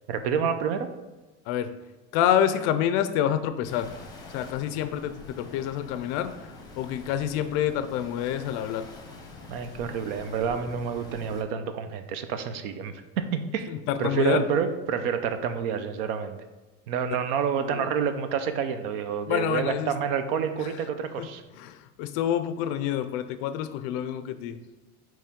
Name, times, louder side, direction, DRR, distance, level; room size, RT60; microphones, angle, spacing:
voice 1, 0.1-0.9 9.5-12.9 13.3-13.7 14.0-16.4 16.9-21.4, right 7 dB, 75° right, 9 dB, 0.7 m, -28 dB
voice 2, 2.1-3.9 4.3-6.3 6.7-8.9 13.7-14.5 17.6-17.9 19.3-19.9 20.6-20.8 21.2-21.3 21.5-24.6, left 10 dB, 50° left, 11 dB, 0.4 m, -27 dB
sound 1, 3.6-11.4, left 3 dB, 10° left, 0.8 m, -45 dB
8.7 x 3.1 x 3.6 m, 1.2 s
cardioid pair, 165°, 30 cm